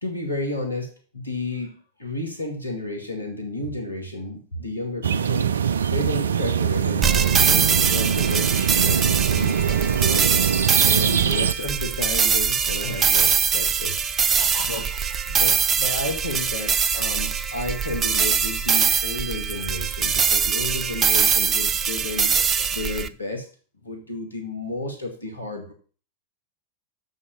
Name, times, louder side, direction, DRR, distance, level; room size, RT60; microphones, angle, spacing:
voice 1, 0.0-1.7 2.0-10.2 10.8-14.0 14.7-14.8 15.3-22.3 22.7-23.5 23.8-25.7, left 2 dB, 85° left, 3 dB, 1.9 m, -32 dB
sound 1, 5.0-11.5, right 8 dB, 70° right, 0.4 m, -22 dB
sound 2, 7.0-23.1, right 6 dB, 25° right, 0.6 m, -22 dB
voice 2, 10.0-10.6 10.9-11.1 12.8-12.9 14.4-14.9 22.3-22.7, left 2 dB, 50° left, -2 dB, 2.9 m, -39 dB
7.0 x 6.4 x 7.0 m, 0.39 s
figure-of-eight pair, 90°, 0 cm